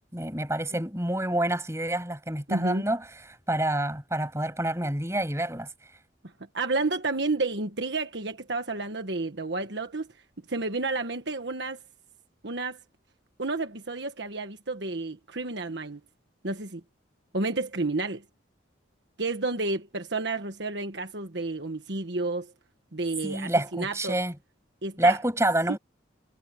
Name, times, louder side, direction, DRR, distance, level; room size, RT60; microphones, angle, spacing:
voice 1, 0.1-5.7 23.2-24.4 25.0-25.8, right 1 dB, 15° right, 7.4 m, -27 dB
voice 2, 2.5-2.8 6.5-10.1 10.5-11.8 12.4-12.8 13.4-16.0 16.4-16.8 17.3-18.2 19.2-22.5 22.9-24.2 24.8-25.2, right 3 dB, 60° right, 1.4 m, -30 dB
head